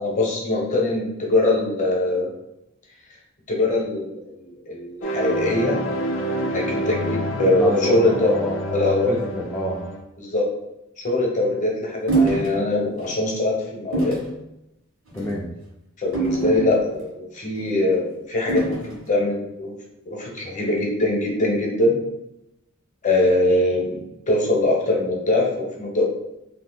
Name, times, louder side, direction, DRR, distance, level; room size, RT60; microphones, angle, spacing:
voice 1, 0.0-2.3 3.5-5.8 6.4-8.3 8.7-9.2 10.2-10.4 11.0-14.2 16.0-18.8 19.1-19.8 20.1-21.9 23.0-24.0 24.3-26.0, left 2 dB, 35° left, -2 dB, 0.8 m, -22 dB
sound 1, 5.0-10.0, equal, 65° left, 0.5 m, -28 dB
voice 2, 7.5-9.8 15.1-15.5, left 1 dB, 10° left, -5 dB, 0.3 m, -28 dB
sound 2, 12.1-12.5 13.0-13.2 13.9-14.3 15.1-15.4 16.1-17.0 18.5-19.0, right 3 dB, 85° right, 1.2 m, -24 dB
2.8 x 2.4 x 3.8 m, 0.88 s
head